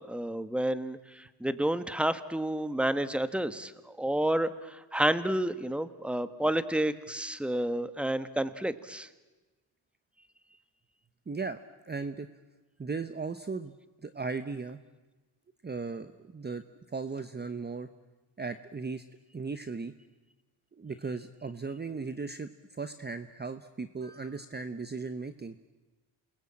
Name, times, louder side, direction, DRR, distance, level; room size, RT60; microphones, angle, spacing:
voice 1, 0.1-3.7 4.0-4.5 4.9-9.1, right 1 dB, ahead, 12 dB, 1.4 m, -30 dB
voice 2, 11.3-11.6 11.9-12.3 12.8-13.7 14.0-14.8 15.6-17.9 18.4-19.0 19.3-19.9 20.8-25.6, right 4 dB, 20° right, 10 dB, 1.0 m, -37 dB
28.5 x 21.0 x 8.8 m, 1.2 s
cardioid pair, 90°, 46 cm